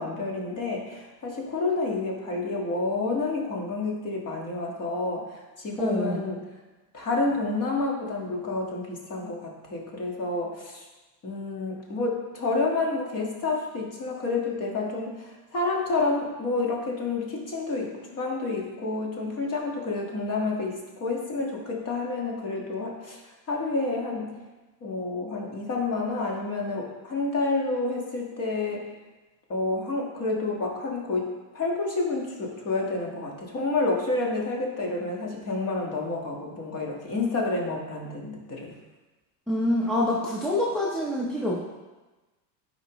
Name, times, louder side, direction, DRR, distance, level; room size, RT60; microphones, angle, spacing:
voice 1, 0.0-6.4 6.9-10.9 11.2-23.2 23.5-24.3 24.8-28.9 29.5-38.7, left 3 dB, 30° left, -1 dB, 1.6 m, -29 dB
voice 2, 5.8-6.2 39.5-41.6, left 1 dB, ahead, -5 dB, 0.7 m, -26 dB
12.0 x 4.8 x 3.0 m, 1.2 s
supercardioid pair, 145°, 47 cm